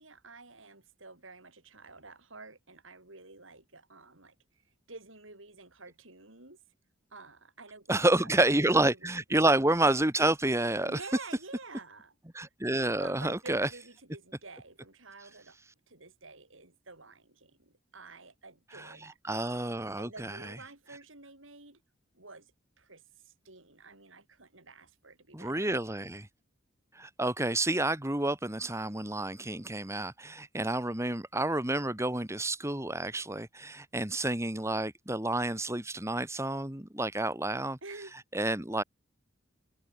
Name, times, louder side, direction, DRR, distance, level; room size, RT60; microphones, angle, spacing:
voice 1, 0.0-4.4 4.9-6.6 7.1-9.1 10.8-12.5 13.0-15.6 15.9-19.6 20.0-21.8 22.1-22.5 22.8-25.7 37.8-38.1, right 3 dB, 75° right, 7.2 m, -50 dB
voice 2, 7.9-11.0 12.3-13.7 18.7-20.4 25.3-26.3 27.0-37.8 38.3-38.8, right 2 dB, 15° right, 2.2 m, -29 dB
head